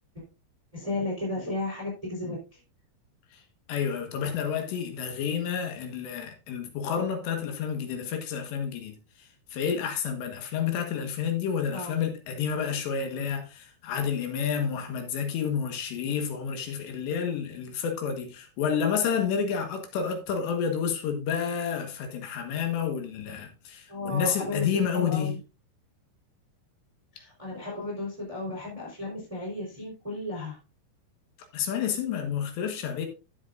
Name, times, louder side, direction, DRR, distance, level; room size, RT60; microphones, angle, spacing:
voice 1, 0.7-2.6 11.7-12.0 23.9-24.6 24.9-25.4 27.1-30.6, left 2 dB, 10° right, 3.0 m, -34 dB
voice 2, 3.7-25.4 31.5-33.1, left 7 dB, 65° left, 3.3 m, -30 dB
13.0 x 8.0 x 2.5 m
omnidirectional pair, 5.9 m